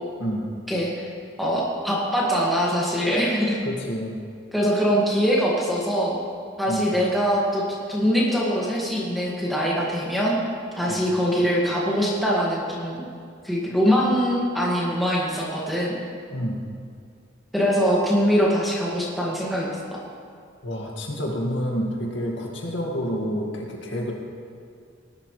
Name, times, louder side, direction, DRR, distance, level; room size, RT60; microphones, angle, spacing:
voice 1, 0.7-1.1 1.4-3.6 4.5-6.2 6.6-7.6 7.9-10.4 10.8-13.1 13.4-16.0 17.5-20.0, equal, ahead, -6 dB, 2.0 m, -23 dB
voice 2, 3.6-4.2 6.7-6.9 10.9-11.0 16.3-16.6 20.6-24.1, equal, 70° left, -1 dB, 2.1 m, -28 dB
19.0 x 11.5 x 3.3 m, 2.3 s
head